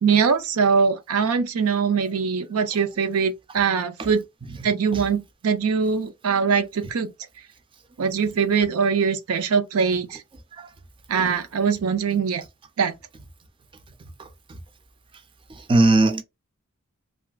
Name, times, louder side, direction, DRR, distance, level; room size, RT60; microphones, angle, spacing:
voice 1, 0.0-4.2 4.6-7.1 8.0-10.2 11.1-12.4 12.8-12.9, right 6 dB, 80° right, 0.5 m, -22 dB
voice 2, 14.2-14.6 15.5-16.2, right 2 dB, 25° right, 0.4 m, -21 dB
2.9 x 2.4 x 2.3 m
head